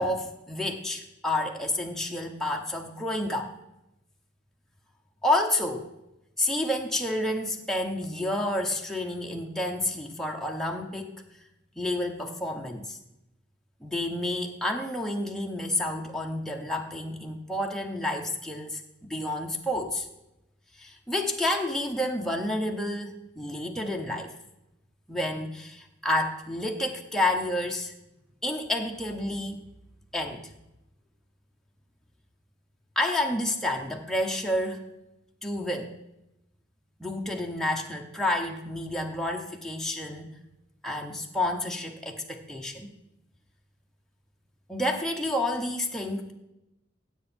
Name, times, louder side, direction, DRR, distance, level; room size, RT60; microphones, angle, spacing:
voice 1, 0.0-3.5 5.2-5.9 6.4-11.1 11.8-13.0 13.8-20.1 20.8-24.3 25.1-27.9 28.4-29.6 30.1-30.5 33.0-34.9 35.4-35.9 37.0-40.3 40.8-42.9 44.7-46.3, left 1 dB, ahead, 1 dB, 0.9 m, -29 dB
16.0 x 7.8 x 4.4 m, 0.89 s
head